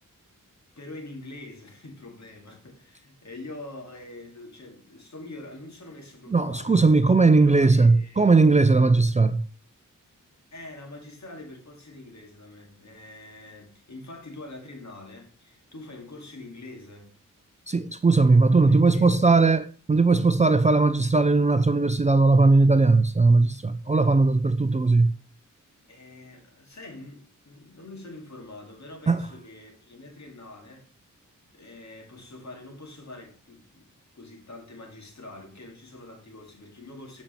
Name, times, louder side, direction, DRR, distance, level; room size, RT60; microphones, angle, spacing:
voice 1, 0.8-6.9 7.4-8.3 10.5-17.1 18.7-19.5 25.9-30.9 31.5-37.2, left 2 dB, 55° left, 2.2 m, -44 dB
voice 2, 6.3-9.4 17.7-19.6 19.9-25.2 29.1-29.2, right 3 dB, 20° right, 0.4 m, -19 dB
7.3 x 5.3 x 4.4 m
wide cardioid pair, 75°, 32 cm